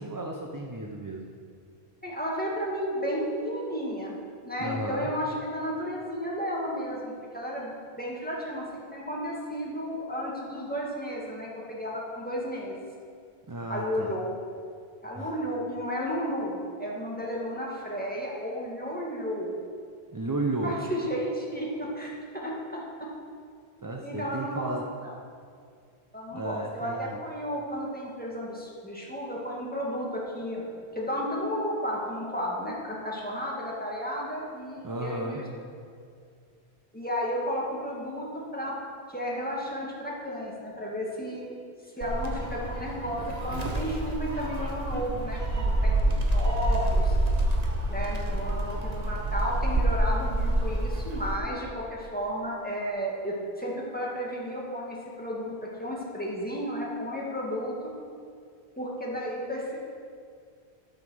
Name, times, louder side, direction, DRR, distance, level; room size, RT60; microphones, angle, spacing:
voice 1, 0.0-1.3 4.6-5.1 13.5-14.2 15.1-15.3 20.1-20.8 23.8-24.9 26.3-27.2 34.8-35.4, right 2 dB, 20° right, 0 dB, 0.7 m, -33 dB
voice 2, 2.0-4.1 4.4-7.7 8.0-8.7 8.9-12.8 13.7-14.3 15.0-19.5 20.6-23.1 24.0-24.7 25.0-25.1 26.1-30.6 30.9-35.4 36.9-38.7 39.1-41.6 42.0-47.1 47.9-57.7 58.8-59.8, equal, 10° left, -4 dB, 2.0 m, -33 dB
Gull seagull, 42.0-51.4, right 1 dB, 40° right, 1.1 m, -27 dB
13.0 x 5.7 x 6.3 m, 2.2 s
omnidirectional pair, 1.1 m